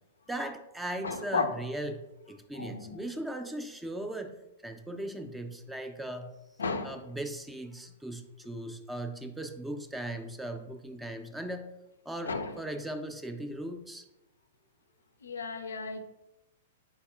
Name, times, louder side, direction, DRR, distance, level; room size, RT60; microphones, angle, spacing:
voice 1, 0.3-4.4 4.6-6.3 6.8-11.7 12.1-14.0, right 1 dB, 5° right, 6 dB, 0.4 m, -38 dB
voice 2, 1.0-1.5 2.5-3.0 6.6-6.9 12.2-12.5 15.2-16.0, left 4 dB, 75° left, 8 dB, 0.3 m, -33 dB
4.1 x 4.1 x 2.3 m, 0.95 s
figure-of-eight pair, 105°, 0 cm